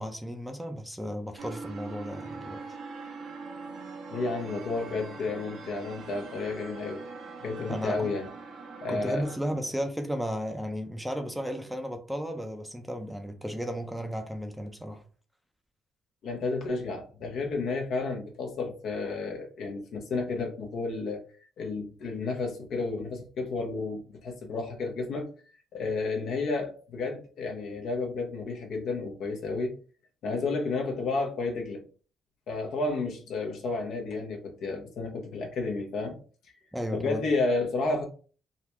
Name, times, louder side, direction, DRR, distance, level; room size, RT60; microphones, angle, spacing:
voice 1, 0.0-2.6 7.7-8.1 8.9-15.0 36.7-37.2, equal, 5° right, 0.6 m, -34 dB
sound 1, 1.4-9.4, right 4 dB, 80° right, 1.1 m, -42 dB
voice 2, 4.1-7.0 7.4-8.3 8.8-9.3 16.2-21.2 21.6-25.3 25.7-29.7 30.2-31.8 32.5-36.1 36.9-38.0, left 3 dB, 75° left, 1.0 m, -31 dB
3.9 x 2.2 x 2.9 m
cardioid pair, 90°, 0 cm